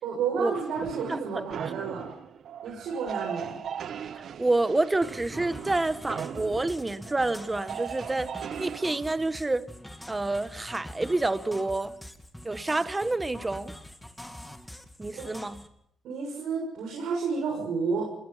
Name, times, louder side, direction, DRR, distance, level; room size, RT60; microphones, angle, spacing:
voice 1, 0.0-2.1 2.6-3.6 15.1-15.3 16.0-18.1, right 5 dB, 80° right, 6.7 m, -31 dB
sound 1, 0.5-8.8, right 8 dB, 60° right, 0.9 m, -38 dB
voice 2, 1.1-1.4 4.2-8.3 8.6-9.7 10.1-11.9 12.4-13.7 15.0-15.6, right 2 dB, 20° right, 1.3 m, -28 dB
sound 2, 5.0-15.7, left 1 dB, 5° left, 2.4 m, -45 dB
27.0 x 20.5 x 5.8 m
cardioid pair, 90°, 0 cm